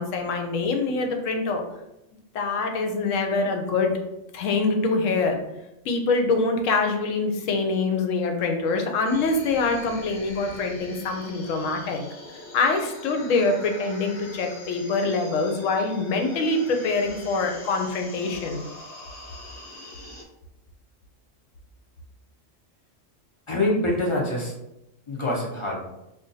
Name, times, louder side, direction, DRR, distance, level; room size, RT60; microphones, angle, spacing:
voice 1, 0.0-1.6 2.3-4.0 4.3-5.4 5.8-12.0 12.5-18.6, left 3 dB, 85° left, 4 dB, 1.0 m, -24 dB
sound 1, 9.0-20.2, left 2 dB, 60° left, 0.8 m, -44 dB
voice 2, 23.5-24.5 25.1-25.9, left 1 dB, 35° left, -3 dB, 0.5 m, -25 dB
2.5 x 2.2 x 3.8 m, 0.89 s
omnidirectional pair, 1.3 m